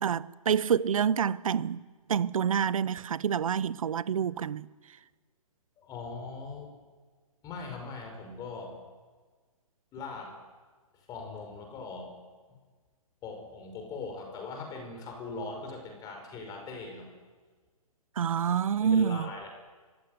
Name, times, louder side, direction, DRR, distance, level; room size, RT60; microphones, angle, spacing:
voice 1, 0.0-1.8 2.1-4.7 18.2-19.3, right 7 dB, 65° right, 0.9 m, -27 dB
voice 2, 5.8-6.7 7.4-8.8 9.9-10.3 10.9-12.2 13.2-17.1 18.8-19.5, left 4 dB, 20° left, 5.5 m, -40 dB
24.5 x 15.5 x 9.4 m
hypercardioid pair, 140°, 19 cm